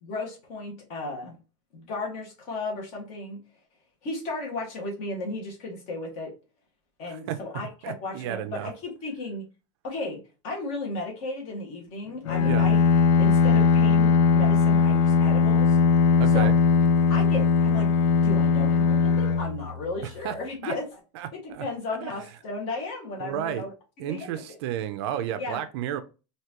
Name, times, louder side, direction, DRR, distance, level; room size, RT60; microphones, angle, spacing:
voice 1, 0.0-1.4 1.7-3.4 4.0-6.3 7.0-9.5 9.8-10.2 10.4-12.8 13.2-15.8 16.3-16.5 17.1-21.0 21.3-23.7 24.0-24.6 25.3-25.6, left 2 dB, 40° left, 1.8 m, -34 dB
voice 2, 7.1-7.4 7.8-8.7 12.4-12.7 16.2-16.5 20.0-20.4 20.6-20.7 21.1-21.6 22.0-22.1 23.2-23.6 24.0-26.0, right 11 dB, 60° right, 0.5 m, -32 dB
Bowed string instrument, 12.2-20.2, left 5 dB, 70° left, 0.5 m, -20 dB
4.5 x 2.8 x 2.9 m
supercardioid pair, 170°, 16 cm